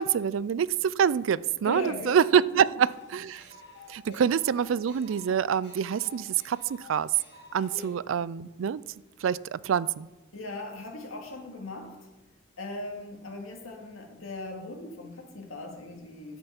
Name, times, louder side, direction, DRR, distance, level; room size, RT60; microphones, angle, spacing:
voice 1, 0.0-3.4 3.9-7.1 7.5-8.8 9.2-10.1, right 7 dB, 75° right, 20 dB, 0.3 m, -26 dB
voice 2, 1.6-2.1 2.5-2.7 3.6-3.8 4.1-4.2 7.7-7.9 10.3-12.1 12.6-16.4, left 2 dB, 90° left, 2 dB, 2.2 m, -39 dB
sound 1, 2.9-7.9, left 3 dB, 55° left, 3.1 m, -51 dB
10.5 x 8.0 x 5.8 m, 1.0 s
head